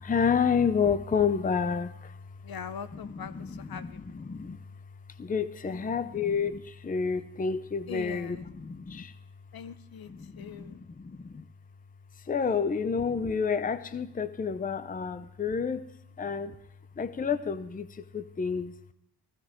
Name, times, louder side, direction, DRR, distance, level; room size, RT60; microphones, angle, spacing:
voice 1, 0.0-2.2 2.9-4.6 5.2-9.2 10.1-11.4 12.2-15.9 16.2-16.6 17.0-18.7, left 6 dB, 20° left, 13 dB, 0.6 m, -30 dB
voice 2, 2.4-4.0 5.7-5.9 7.9-8.4 9.5-10.1 10.4-10.8, left 7 dB, 60° left, 13 dB, 0.8 m, -41 dB
15.0 x 14.5 x 3.7 m, 0.76 s
cardioid pair, 80°, 41 cm